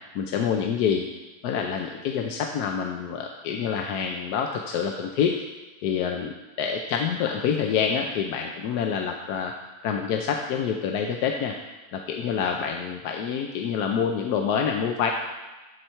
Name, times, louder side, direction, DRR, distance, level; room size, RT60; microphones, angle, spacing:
voice 1, 0.1-1.0 1.4-5.3 5.8-9.5 9.8-11.5 11.9-15.1, left 7 dB, 90° left, 2 dB, 1.2 m, -27 dB
13.0 x 4.4 x 4.5 m, 1.2 s
omnidirectional pair, 1.7 m